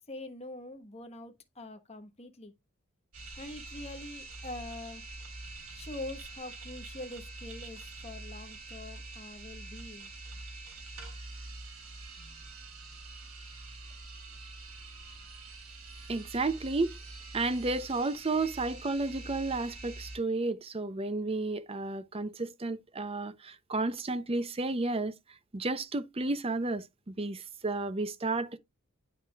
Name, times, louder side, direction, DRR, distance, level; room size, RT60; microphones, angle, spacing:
voice 1, 0.1-2.5 3.4-5.0 5.7-10.1, left 2 dB, 30° left, 1.2 m, -44 dB
sound 1, 3.1-20.2, right 2 dB, 90° right, 3.2 m, -45 dB
voice 2, 16.1-17.0 17.3-25.1 25.5-28.6, right 3 dB, 25° right, 0.6 m, -32 dB
9.0 x 5.7 x 2.4 m
head